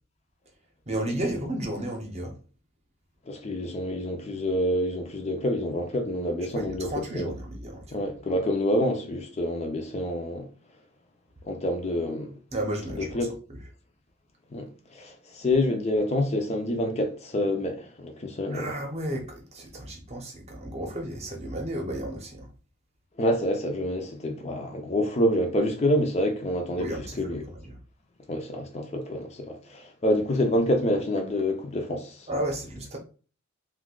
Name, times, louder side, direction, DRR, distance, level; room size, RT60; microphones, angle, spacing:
voice 1, 0.9-2.3 6.5-8.0 12.5-13.2 18.5-22.5 26.8-27.8 32.3-33.0, right 1 dB, 30° right, 0.7 m, -33 dB
voice 2, 3.3-7.3 7.9-10.5 11.5-12.3 12.9-13.3 14.5-18.7 23.2-26.9 27.2-27.4 28.3-32.3, left 1 dB, 30° left, 0.5 m, -27 dB
2.7 x 2.3 x 3.7 m
head